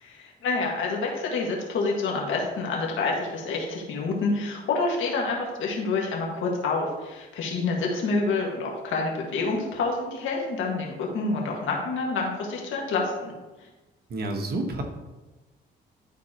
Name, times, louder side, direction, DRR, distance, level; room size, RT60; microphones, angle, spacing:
voice 1, 0.0-13.3, left 3 dB, 80° left, -1 dB, 1.8 m, -28 dB
voice 2, 14.1-14.8, right 2 dB, 50° right, 3 dB, 1.3 m, -29 dB
12.0 x 4.2 x 3.0 m, 1.1 s
cardioid pair, 90°, 20 cm